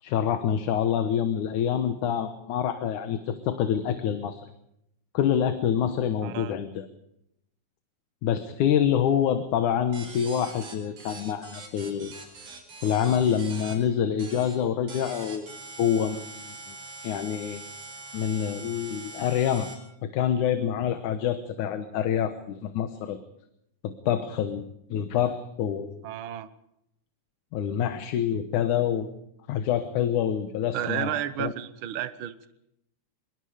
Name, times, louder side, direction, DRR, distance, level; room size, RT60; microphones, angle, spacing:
voice 1, 0.0-4.5 5.1-6.9 8.2-12.1 12.8-16.8 17.0-17.6 18.1-19.7 20.0-23.2 23.8-24.6 24.9-26.0 27.5-29.1 29.5-31.5, left 9 dB, 80° left, 9 dB, 2.6 m, -26 dB
voice 2, 6.2-6.5 26.0-26.5 30.7-32.5, right 11 dB, 60° right, 12 dB, 1.4 m, -32 dB
sound 1, 9.9-13.7 14.2-14.5 14.9-19.7, right 3 dB, 80° right, 6.5 m, -43 dB
23.5 x 23.0 x 5.0 m, 0.78 s
omnidirectional pair, 3.5 m